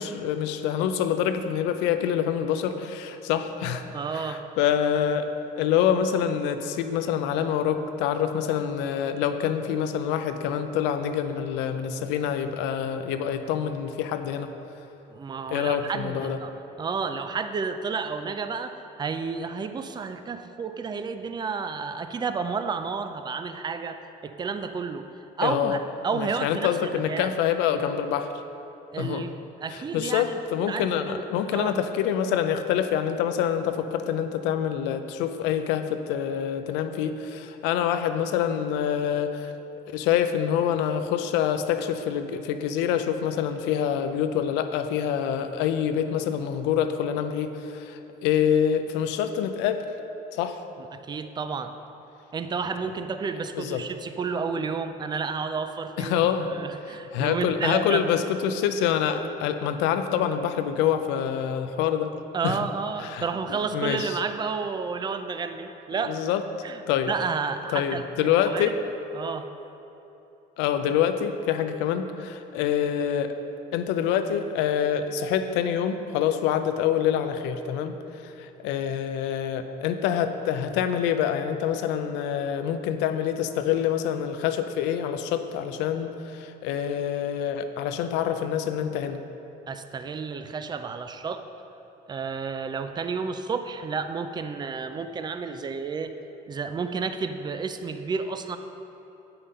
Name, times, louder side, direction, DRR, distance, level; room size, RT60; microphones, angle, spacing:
voice 1, 0.0-3.8 4.1-14.5 15.5-16.4 25.4-25.8 26.1-28.3 29.0-29.2 29.7-39.5 39.9-49.8 50.3-50.6 53.6-53.8 56.0-56.5 57.1-62.1 62.4-62.6 63.0-64.2 66.0-66.4 66.9-67.1 67.7-68.7 70.6-73.4 73.7-89.2, left 9 dB, 90° left, 9 dB, 0.5 m, -26 dB
voice 2, 3.9-4.4 15.1-16.5 16.8-25.0 25.4-25.8 26.0-27.3 28.9-29.3 29.6-30.3 30.7-31.2 31.5-31.8 50.8-51.7 52.3-58.1 62.3-66.2 66.6-66.8 67.1-68.7 69.1-69.5 89.7-91.4 92.1-96.1 96.5-98.6, right 5 dB, 25° right, 8 dB, 0.5 m, -31 dB
8.3 x 5.7 x 5.3 m, 3.0 s
cardioid pair, 100°, 18 cm